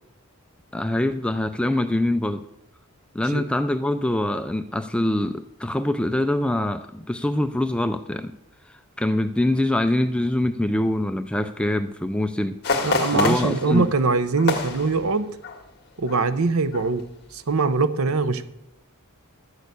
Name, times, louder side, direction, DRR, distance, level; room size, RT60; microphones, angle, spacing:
voice 1, 0.7-2.4 3.1-8.3 8.7-12.5 13.1-13.9, left 1 dB, 5° left, 9 dB, 0.4 m, -24 dB
sound 1, 12.6-15.7 16.0-16.2 16.7-17.1 17.5-17.6, left 3 dB, 50° left, 1.7 m, -27 dB
voice 2, 12.8-15.3 16.0-17.0 17.3-18.5, right 4 dB, 65° right, 12 dB, 0.7 m, -22 dB
12.0 x 6.5 x 8.2 m, 0.84 s
head